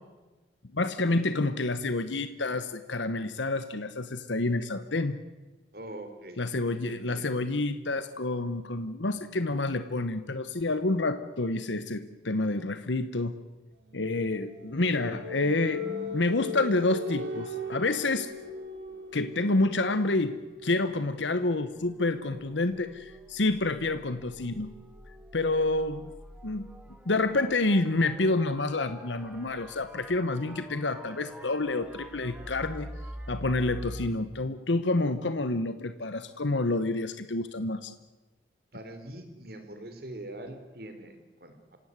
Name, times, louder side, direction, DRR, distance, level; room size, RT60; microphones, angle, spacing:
voice 1, 0.7-5.2 6.4-13.4 13.9-18.3 19.1-24.7 25.3-26.1 26.4-26.7 27.0-32.9 33.3-37.9, left 2 dB, 90° left, 11 dB, 1.1 m, -28 dB
voice 2, 5.7-7.3 38.7-41.8, right 1 dB, 55° right, 7 dB, 3.7 m, -43 dB
sound 1, 13.9-25.4, left 1 dB, 85° right, 4.7 m, -40 dB
sound 2, 21.1-34.1, equal, 5° right, 2.1 m, -46 dB
27.5 x 16.5 x 9.6 m, 1.2 s
head